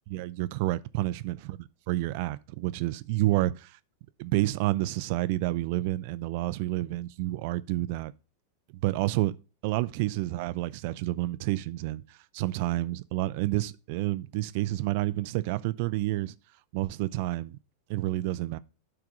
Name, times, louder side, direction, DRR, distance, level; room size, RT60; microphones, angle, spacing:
voice 1, 0.1-1.4 1.9-3.8 4.2-8.1 8.8-9.3 9.6-16.3 16.7-17.6 17.9-18.6, right 17 dB, 45° right, 0.5 m, -29 dB
8.1 x 3.6 x 6.1 m
figure-of-eight pair, 90°, 0 cm